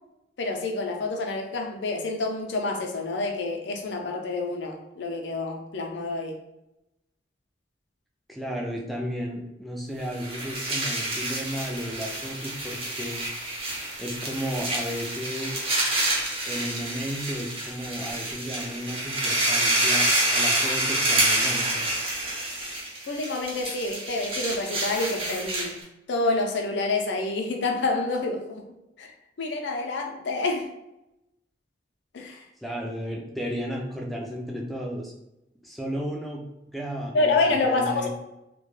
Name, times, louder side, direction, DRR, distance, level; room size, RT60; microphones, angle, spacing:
voice 1, 0.4-6.4 23.1-25.7 26.1-28.7 29.0-29.1 29.4-30.7 32.1-32.4 37.1-38.1, left 3 dB, 90° left, 3 dB, 0.5 m, -28 dB
voice 2, 8.3-13.2 14.0-15.7 16.5-21.9 32.6-35.1 35.6-37.4 37.6-38.1, equal, ahead, -1 dB, 0.3 m, -33 dB
sound 1, 10.0-25.8, right 1 dB, 35° right, 0.6 m, -28 dB
2.2 x 2.1 x 3.1 m, 0.90 s
head